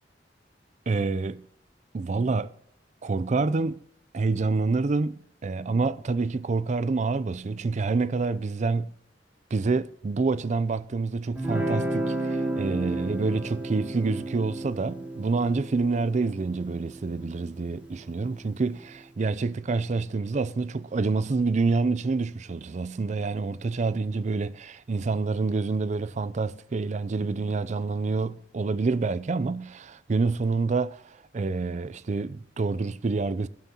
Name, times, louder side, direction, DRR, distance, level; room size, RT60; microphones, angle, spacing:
voice 1, 0.9-1.4 1.9-2.5 3.0-3.8 4.1-8.9 9.5-31.0 31.3-33.5, right 3 dB, 40° right, 0.4 m, -27 dB
Guitar, 11.4-18.5, right 1 dB, 10° right, 3.0 m, -33 dB
22.0 x 11.0 x 2.9 m
head